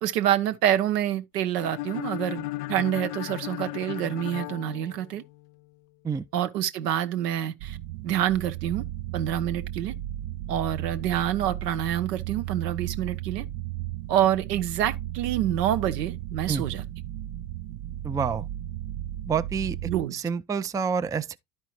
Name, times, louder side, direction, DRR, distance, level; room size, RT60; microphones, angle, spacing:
voice 1, 0.0-5.2 6.3-7.8 8.0-8.8 9.1-9.9 10.5-13.4 14.1-16.8 19.9-20.2, right 11 dB, 75° right, 1.0 m, -27 dB
sound 1, 1.6-5.5, left 19 dB, 70° left, 0.6 m, -36 dB
sound 2, 7.6-20.1, right 14 dB, 60° right, 0.5 m, -35 dB
voice 2, 18.0-18.5 19.3-19.8 20.1-21.4, right 6 dB, 10° right, 0.4 m, -28 dB
12.0 x 5.3 x 3.0 m
hypercardioid pair, 60°, 49 cm